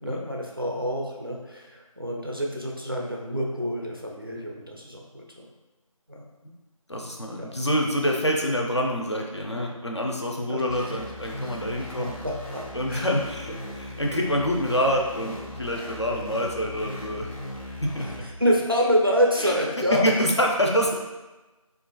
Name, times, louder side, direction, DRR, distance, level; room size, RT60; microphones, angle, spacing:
voice 1, 0.0-5.5 6.1-6.2 7.4-7.5 10.5-10.6 11.4-11.9 12.2-13.1 15.7-15.8 17.7-20.4, equal, 40° right, -1 dB, 0.4 m, -27 dB
voice 2, 6.9-12.2 12.7-17.3 17.8-18.3 19.4-19.6 19.9-20.9, equal, 50° left, 0 dB, 0.4 m, -26 dB
sound 1, 10.7-18.2, left 1 dB, 85° left, 0.7 m, -38 dB
3.0 x 2.3 x 2.2 m, 1.1 s
figure-of-eight pair, 175°, 18 cm